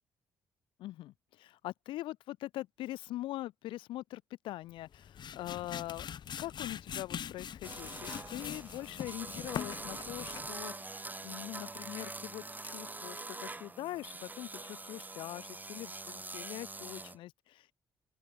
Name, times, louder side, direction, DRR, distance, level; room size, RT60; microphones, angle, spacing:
voice 1, 0.8-6.1 6.4-17.7, left 15 dB, 85° left, 3.5 m, -43 dB
sound 1, 4.8-10.6, left 9 dB, 60° left, 7.2 m, -43 dB
sound 2, 7.6-17.2, right 2 dB, 20° right, 6.2 m, -44 dB
open air
cardioid pair, 75°, 8 cm